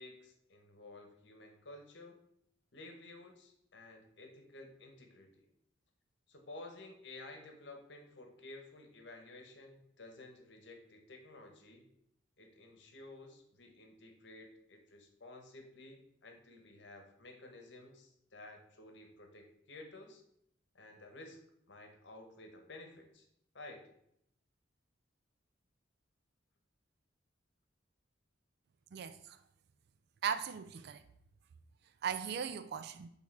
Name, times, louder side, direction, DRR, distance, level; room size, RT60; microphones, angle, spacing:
voice 1, 0.0-2.2 2.7-5.5 6.3-11.9 12.4-20.2 20.7-21.4 21.7-23.3 23.5-23.9, left 2 dB, 65° left, 1.1 m, -53 dB
voice 2, 30.2-31.0 32.0-33.1, right 7 dB, 55° right, 0.3 m, -37 dB
6.3 x 3.5 x 4.7 m
head